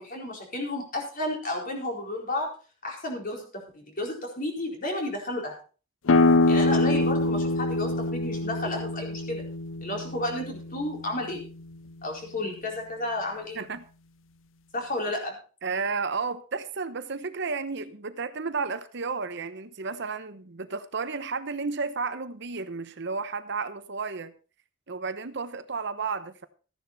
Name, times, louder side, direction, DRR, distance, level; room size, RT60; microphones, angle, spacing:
voice 1, 0.0-2.5 2.8-3.4 3.7-5.6 6.5-9.4 9.8-11.4 12.0-13.6 14.7-15.4, left 1 dB, 45° left, 1 dB, 4.5 m, -32 dB
sound 1, 6.1-11.5, left 2 dB, 70° left, 0.6 m, -25 dB
voice 2, 15.6-24.3 24.9-26.5, right 4 dB, 60° right, 12 dB, 0.9 m, -32 dB
14.0 x 10.5 x 4.1 m, 0.36 s
head